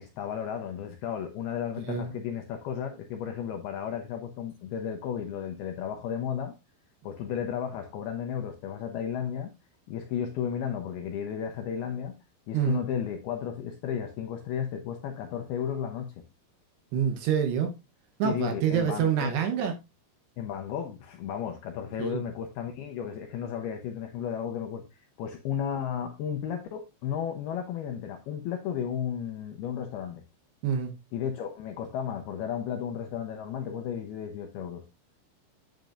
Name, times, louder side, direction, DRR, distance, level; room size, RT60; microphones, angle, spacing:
voice 1, 0.0-6.5 7.0-9.5 9.9-12.2 12.5-16.1 18.2-19.3 20.4-30.2 31.1-34.8, left 8 dB, 80° left, 2.3 m, -34 dB
voice 2, 16.9-17.7 18.2-19.7 22.0-22.2 30.6-30.9, right 8 dB, 70° right, 2.9 m, -27 dB
9.2 x 8.1 x 2.6 m
omnidirectional pair, 5.5 m